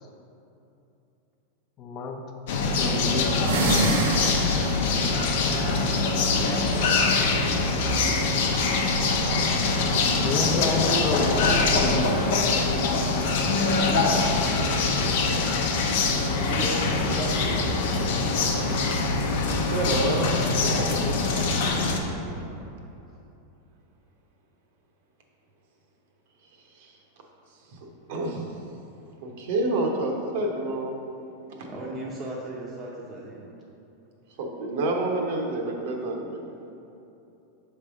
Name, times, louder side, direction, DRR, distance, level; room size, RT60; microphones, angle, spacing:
voice 1, 1.8-2.2 2.8-4.1 5.0-5.8 10.2-12.1, left 3 dB, 35° left, 3 dB, 0.7 m, -30 dB
sound 1, 2.5-22.0, left 3 dB, 70° left, 0.7 m, -23 dB
sound 2, 3.3-5.0, right 2 dB, 85° right, 0.7 m, -25 dB
voice 2, 13.7-14.5 16.4-18.1 20.6-22.6 31.7-33.5, right 1 dB, 25° right, -5 dB, 0.7 m, -36 dB
voice 3, 19.7-20.3 26.7-26.9 28.1-28.4 29.2-30.9 31.6-31.7 34.4-36.4, right 2 dB, 65° right, 1 dB, 1.0 m, -28 dB
6.6 x 3.4 x 5.0 m, 2.8 s
supercardioid pair, 140°, 0 cm